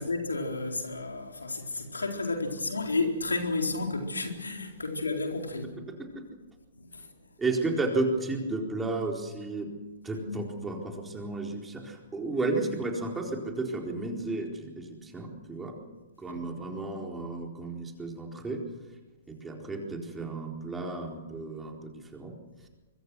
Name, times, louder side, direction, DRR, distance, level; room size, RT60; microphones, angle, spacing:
voice 1, 0.0-5.7 6.8-7.1 10.1-10.4 16.3-16.6, left 3 dB, 80° left, 4.2 m, -32 dB
voice 2, 7.4-9.7 10.0-15.8 16.2-18.6 19.3-22.4, right 2 dB, 10° right, 4.2 m, -33 dB
24.5 x 23.0 x 6.3 m
figure-of-eight pair, 115°, 0 cm